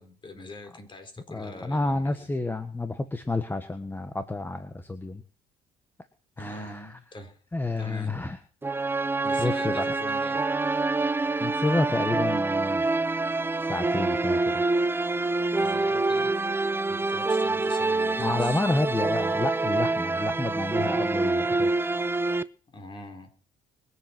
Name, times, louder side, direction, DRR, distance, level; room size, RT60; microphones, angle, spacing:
voice 1, 0.0-2.3 6.4-7.4 7.8-8.1 9.2-10.4 15.6-16.5 16.9-18.6 22.7-23.3, left 2 dB, 30° left, 7 dB, 4.3 m, -43 dB
voice 2, 1.3-5.2 6.4-6.9 7.5-8.4 9.4-9.9 11.4-12.8 13.6-14.6 18.2-21.9, left 2 dB, 10° left, 8 dB, 1.3 m, -29 dB
sound 1, 8.6-22.4, right 3 dB, 15° right, 0.6 m, -26 dB
22.5 x 7.8 x 6.0 m, 0.40 s
cardioid pair, 110°, 17 cm